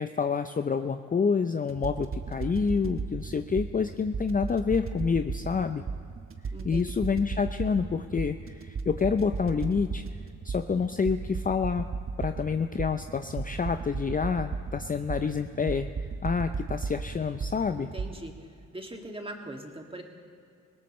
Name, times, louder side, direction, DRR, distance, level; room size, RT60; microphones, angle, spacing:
voice 1, 0.0-5.8 6.6-10.0 10.4-11.9 12.2-15.9 16.2-17.9, left 5 dB, 25° left, 8 dB, 0.6 m, -28 dB
sound 1, 1.7-18.1, right 4 dB, 40° right, 1.1 m, -35 dB
voice 2, 6.5-6.9 17.8-18.5 18.7-20.0, right 1 dB, 15° right, 2 dB, 2.2 m, -41 dB
20.5 x 17.5 x 3.2 m, 2.2 s
supercardioid pair, 60°, 33 cm